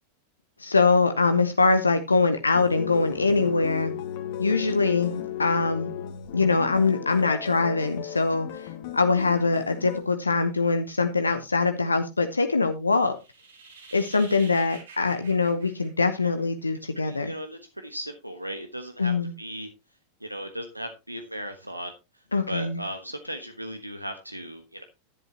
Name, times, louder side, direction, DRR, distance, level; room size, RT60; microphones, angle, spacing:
voice 1, 0.6-3.9 4.4-5.9 6.3-13.2 13.9-17.3 19.0-19.3 22.3-22.8, left 3 dB, 80° left, 0.9 m, -23 dB
sound 1, 2.5-10.0, left 10 dB, 50° left, 2.0 m, -35 dB
sound 2, 13.0-16.6, right 4 dB, 70° right, 6.1 m, -48 dB
voice 2, 17.0-19.7 20.2-24.8, equal, 85° right, 1.3 m, -37 dB
11.0 x 10.5 x 2.9 m
figure-of-eight pair, 90°, 0 cm